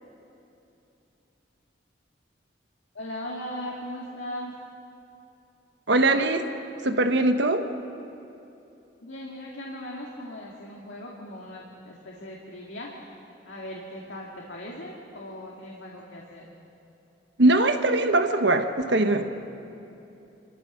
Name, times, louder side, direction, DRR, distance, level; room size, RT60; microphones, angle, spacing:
voice 1, 2.9-4.5 9.0-12.9 13.4-16.5, left 1 dB, 85° left, -3 dB, 2.3 m, -38 dB
voice 2, 5.9-6.5 6.8-7.7 17.4-19.2, right 2 dB, 75° right, 7 dB, 1.2 m, -21 dB
27.5 x 15.0 x 6.5 m, 2.8 s
head